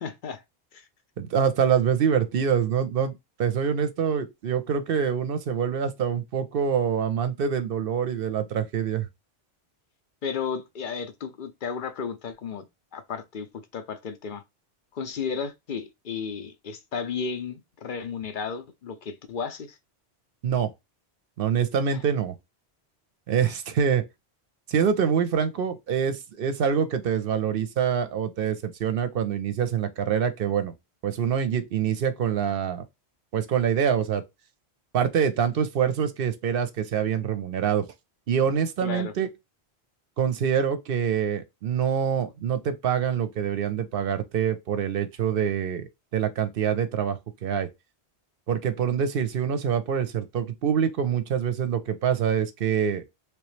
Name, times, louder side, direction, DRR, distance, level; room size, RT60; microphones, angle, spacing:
voice 1, 0.0-0.4 0.7-0.9 10.2-12.7 12.9-14.4 14.9-19.8 21.9-22.0 23.4-23.5 38.8-39.1, left 6 dB, 55° left, 0.7 m, -33 dB
voice 2, 1.2-3.1 3.4-9.1 20.4-20.7 21.4-22.3 23.3-24.0 24.7-30.7 31.0-32.8 33.3-34.2 34.9-37.9 38.3-39.3 40.2-45.8 46.1-47.7 48.5-53.0, right 7 dB, 65° right, 0.8 m, -25 dB
3.3 x 3.0 x 3.1 m
omnidirectional pair, 1.1 m